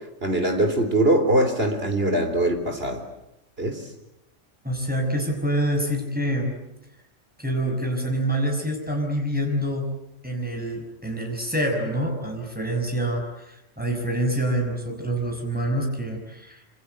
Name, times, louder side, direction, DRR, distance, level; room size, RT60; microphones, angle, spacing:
voice 1, 0.2-3.0 3.6-3.8, right 1 dB, 55° right, 6 dB, 4.1 m, -22 dB
voice 2, 4.6-6.5 7.4-9.9 10.2-16.6, right 1 dB, 5° right, 1 dB, 5.8 m, -26 dB
26.5 x 26.5 x 8.1 m, 0.85 s
omnidirectional pair, 1.3 m